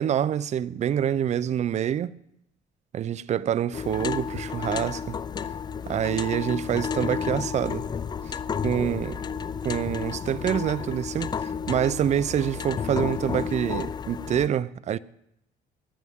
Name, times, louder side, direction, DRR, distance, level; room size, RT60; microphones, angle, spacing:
voice 1, 0.0-2.1 2.9-5.2 5.9-7.8 8.6-9.2 9.6-11.3 11.7-15.0, right 9 dB, 45° right, 0.5 m, -26 dB
sound 1, 3.7-14.5, left 6 dB, 25° left, 0.3 m, -32 dB
sound 2, 5.0-10.9, right 4 dB, 70° right, 6.2 m, -54 dB
17.5 x 11.0 x 3.6 m
cardioid pair, 110°, 17 cm